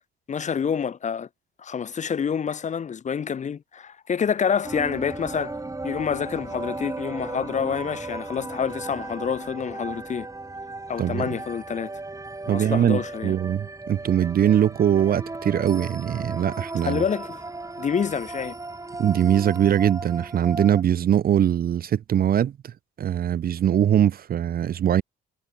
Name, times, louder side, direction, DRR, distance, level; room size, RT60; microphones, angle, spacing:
voice 1, 0.3-1.3 1.6-5.6 5.8-10.3 10.9-11.9 12.4-13.3 16.8-17.4 17.8-18.5, left 7 dB, 35° left, 0.7 m, -27 dB
sound 1, 4.6-20.8, right 2 dB, 15° right, 2.2 m, -36 dB
voice 2, 12.5-17.0 19.0-22.7 23.0-25.0, right 10 dB, 50° right, 0.6 m, -22 dB
cardioid pair, 90°, 20 cm